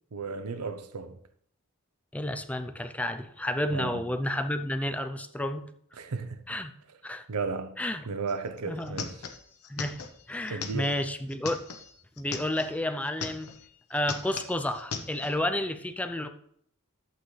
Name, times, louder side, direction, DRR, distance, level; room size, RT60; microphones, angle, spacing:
voice 1, 0.1-1.2 3.7-4.0 6.0-6.4 7.3-7.8 8.1-9.2 10.5-10.9, right 4 dB, 85° right, 0.7 m, -34 dB
voice 2, 2.1-5.6 6.5-6.7 7.0-7.2 7.8-8.0 8.6-9.0 9.7-10.0 10.3-11.6 12.2-13.5 13.9-16.3, left 1 dB, 5° left, 0.5 m, -31 dB
sound 1, 8.3-8.4 8.6-12.7 13.1-13.7 13.9-15.3, left 5 dB, 75° left, 1.0 m, -39 dB
12.0 x 8.0 x 3.2 m
head